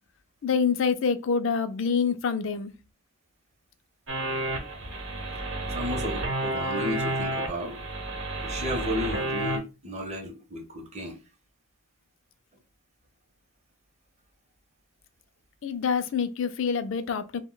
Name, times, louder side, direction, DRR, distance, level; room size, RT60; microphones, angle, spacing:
voice 1, 0.4-2.7 15.6-17.4, left 6 dB, 60° left, 0.4 m, -26 dB
sound 1, 4.1-9.6, right 1 dB, 60° right, 0.8 m, -31 dB
voice 2, 5.7-7.8 8.4-11.2, left 1 dB, 30° right, 0.6 m, -33 dB
2.7 x 2.1 x 3.7 m
head